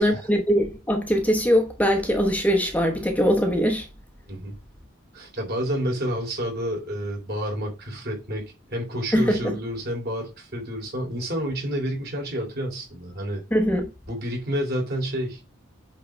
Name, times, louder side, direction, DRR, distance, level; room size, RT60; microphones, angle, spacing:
voice 1, 0.0-3.9 9.1-9.6 13.5-13.9, equal, 5° left, 0.9 m, -22 dB
voice 2, 5.1-13.4 14.1-15.4, equal, 50° right, 3.6 m, -29 dB
8.5 x 3.8 x 5.0 m
head